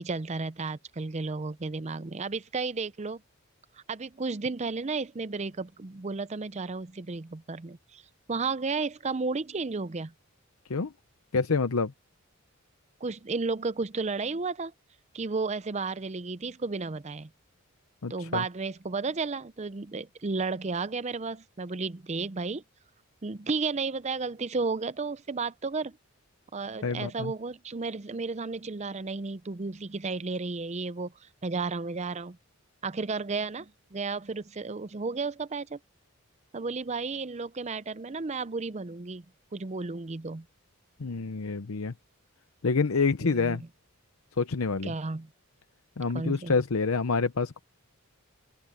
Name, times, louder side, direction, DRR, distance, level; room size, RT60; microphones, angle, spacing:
voice 1, 0.0-3.2 3.9-8.0 8.3-10.1 13.0-14.7 15.1-17.3 18.1-22.6 23.2-26.0 26.5-31.1 31.4-32.4 32.8-35.8 36.5-39.2 39.5-40.5 43.2-43.7 44.8-45.3 46.1-46.6, right 4 dB, 30° right, 0.6 m, -33 dB
voice 2, 11.3-11.9 18.0-18.4 26.8-27.3 41.0-41.9 42.6-43.6 44.4-44.9 46.0-47.6, left 4 dB, 75° left, 0.7 m, -27 dB
open air
head